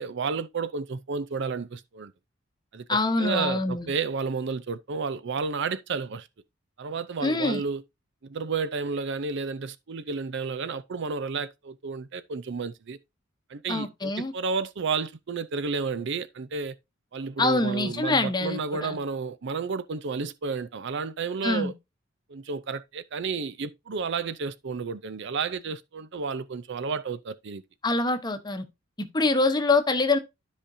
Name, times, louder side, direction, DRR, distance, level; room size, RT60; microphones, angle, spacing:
voice 1, 0.0-2.1 2.7-6.3 6.8-7.8 8.2-13.0 13.5-16.8 17.1-21.7 22.3-27.6, right 5 dB, 60° right, 0.5 m, -31 dB
voice 2, 2.9-3.9 7.2-7.6 13.7-14.3 17.4-19.0 21.4-21.7 27.8-28.6 29.0-30.2, left 2 dB, 20° left, 0.9 m, -25 dB
13.0 x 5.1 x 2.7 m
head